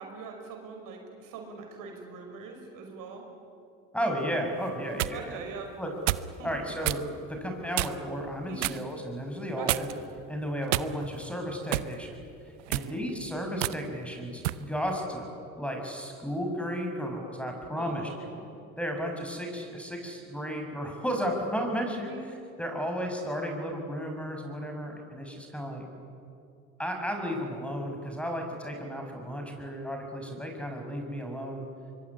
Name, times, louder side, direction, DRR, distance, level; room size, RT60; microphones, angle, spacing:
voice 1, 0.0-3.3 5.1-5.7 6.4-6.5 8.4-8.7 9.5-9.9 12.7-13.0 17.8-18.4 22.1-22.2, right 5 dB, 65° right, 3 dB, 5.7 m, -42 dB
voice 2, 3.9-5.4 5.8-5.9 6.4-9.9 10.3-12.2 12.7-15.3 15.6-18.1 18.8-25.8 26.8-31.6, equal, 5° left, 3 dB, 6.9 m, -33 dB
sound 1, 4.6-5.2 6.1-6.3 6.8-7.1 7.7-8.1 8.6-8.8 9.7-10.1 10.7-11.2 11.7-11.9 12.6-12.9 13.6-13.8 14.4-14.6, right 17 dB, 90° right, 0.8 m, -29 dB
24.0 x 23.5 x 9.9 m, 2.5 s
hypercardioid pair, 75°, 35 cm